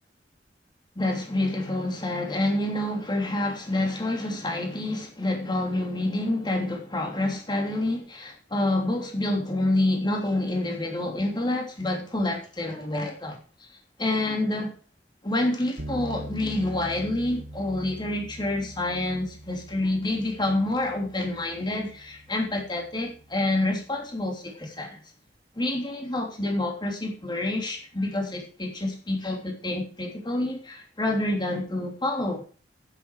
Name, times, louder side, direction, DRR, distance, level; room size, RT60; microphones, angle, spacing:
voice 1, 0.9-13.7 14.0-14.7 15.2-25.0 25.5-32.4, left 1 dB, 25° left, 3.1 m, -28 dB
sound 1, 15.8-23.9, right 1 dB, 60° right, 1.9 m, -43 dB
10.5 x 10.0 x 4.8 m
head